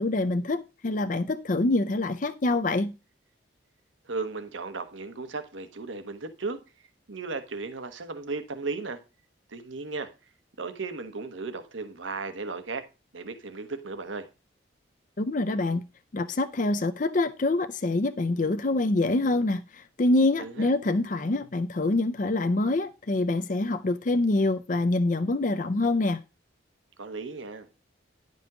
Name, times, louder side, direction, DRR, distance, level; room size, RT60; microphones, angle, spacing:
voice 1, 0.0-2.9 15.2-15.8 16.1-26.2, left 2 dB, 40° left, 0.5 m, -25 dB
voice 2, 4.0-9.0 9.5-10.1 10.6-12.8 13.1-14.3 20.4-20.7 27.0-27.7, right 3 dB, 85° right, 1.2 m, -35 dB
10.5 x 5.4 x 4.8 m
head